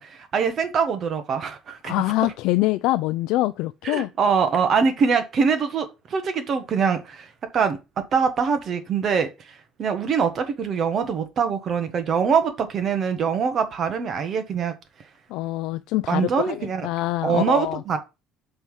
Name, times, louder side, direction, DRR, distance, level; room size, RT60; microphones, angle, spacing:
voice 1, 0.0-1.9 3.8-7.3 7.5-9.3 9.8-14.7 16.1-16.9 17.2-18.0, right 6 dB, 35° right, 1.1 m, -23 dB
voice 2, 1.8-4.1 15.3-17.8, left 17 dB, 80° left, 0.3 m, -24 dB
5.5 x 4.7 x 5.6 m
cardioid pair, 165°, 0 cm